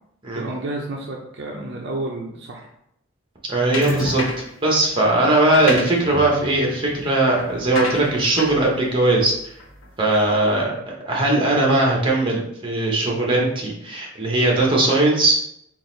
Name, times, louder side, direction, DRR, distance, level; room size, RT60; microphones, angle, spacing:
voice 1, 0.3-2.7, right 2 dB, 55° right, -1 dB, 0.5 m, -30 dB
voice 2, 3.5-4.2 4.6-9.5 10.0-15.4, right 2 dB, 25° right, -2 dB, 1.0 m, -19 dB
sound 1, 3.7-4.6 5.3-10.0, left 1 dB, 75° left, 0.9 m, -31 dB
3.9 x 2.5 x 3.9 m, 0.76 s
head